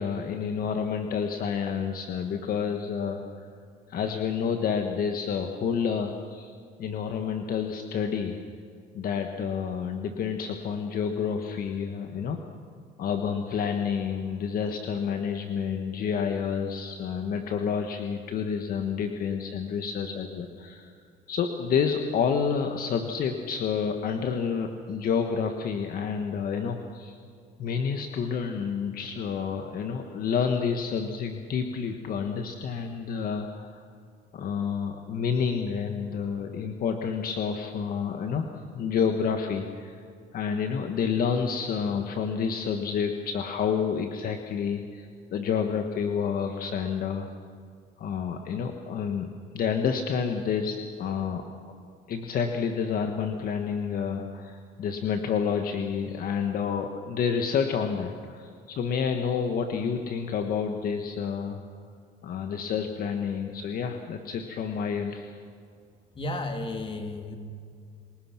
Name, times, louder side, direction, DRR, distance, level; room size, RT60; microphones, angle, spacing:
voice 1, 0.0-3.5 3.9-6.5 6.8-8.4 8.9-12.4 13.0-20.9 21.3-27.2 27.6-33.8 34.3-40.0 40.3-47.3 48.0-49.3 49.5-51.4 52.1-61.6 62.2-65.3, left 6 dB, 60° left, 5 dB, 1.6 m, -29 dB
voice 2, 66.1-67.4, left 2 dB, 30° left, 4 dB, 3.1 m, -33 dB
29.5 x 19.5 x 6.0 m, 2.2 s
cardioid pair, 110°, 17 cm